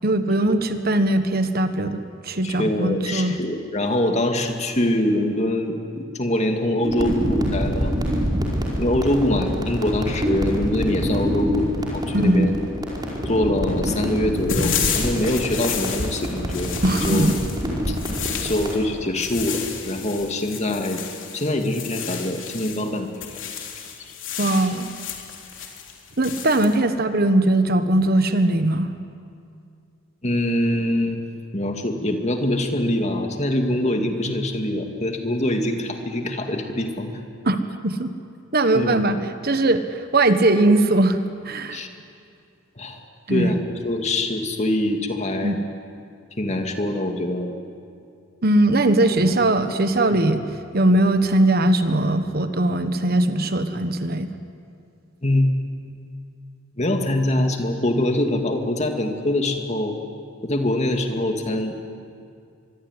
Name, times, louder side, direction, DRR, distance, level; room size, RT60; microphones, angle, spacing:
voice 1, 0.0-3.4 12.1-12.5 16.8-17.3 24.4-24.9 26.2-28.9 37.4-37.6 37.8-38.1 38.5-39.2 39.4-41.2 41.4-41.8 43.3-43.5 45.4-45.5 48.4-50.4 50.7-54.3, right 1 dB, 50° right, 9 dB, 1.3 m, -20 dB
voice 2, 2.4-7.9 8.8-12.6 13.3-17.4 17.9-18.0 18.4-21.0 21.3-23.1 30.2-31.2 31.5-37.2 38.7-39.0 41.7-41.9 42.8-43.0 43.3-43.6 43.8-45.6 46.4-47.5 49.2-49.3 50.1-50.2 55.2-55.5 56.8-60.0 60.4-61.7, left 1 dB, 35° left, 4 dB, 2.4 m, -24 dB
sound 1, 6.8-18.8, equal, 20° right, 5.1 m, -26 dB
sound 2, 14.4-22.9 23.1-26.8, left 6 dB, 65° left, 3.4 m, -31 dB
24.5 x 24.0 x 9.8 m, 2.4 s
head